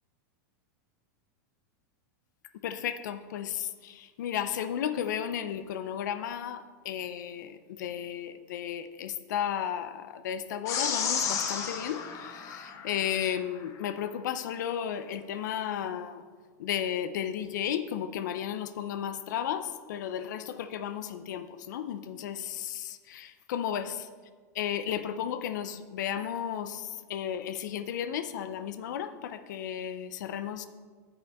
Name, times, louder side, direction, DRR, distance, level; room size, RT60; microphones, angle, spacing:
voice 1, 2.6-16.2 16.6-24.1 24.5-30.7, left 9 dB, 75° left, 11 dB, 0.6 m, -34 dB
sound 1, 10.7-13.3, left 7 dB, 35° left, 0.9 m, -32 dB
8.7 x 6.7 x 3.5 m, 1.5 s
supercardioid pair, 140°, 10 cm